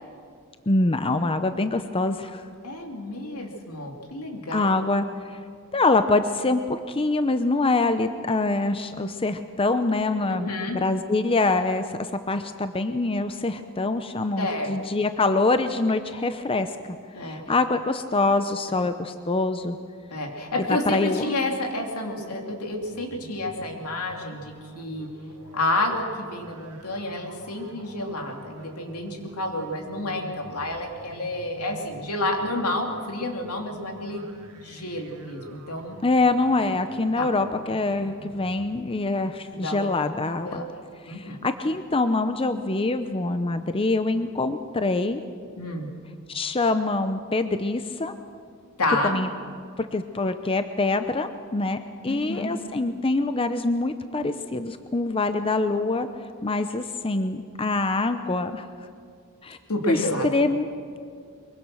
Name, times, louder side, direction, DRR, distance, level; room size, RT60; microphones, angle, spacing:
voice 1, 0.7-2.4 4.5-5.1 5.3-5.4 5.7-6.6 6.9-10.5 10.8-16.7 17.2-19.8 20.6-21.3 36.0-40.6 41.1-45.2 46.3-48.2 49.0-49.3 49.8-56.1 56.4-58.7 59.4-59.6 59.9-60.7, left 2 dB, 25° left, 9 dB, 0.7 m, -25 dB
voice 2, 2.6-4.8 10.5-10.8 14.4-14.7 17.1-17.4 20.1-25.1 25.5-34.2 34.6-36.0 37.1-37.2 39.5-39.9 40.4-40.6 41.1-41.4 45.6-45.9 48.8-49.1 52.1-52.5 59.7-60.3, left 1 dB, 85° left, 2 dB, 3.1 m, -29 dB
sound 1, 22.7-38.7, right 2 dB, 75° right, 2.2 m, -47 dB
23.5 x 23.0 x 6.3 m, 2.2 s
head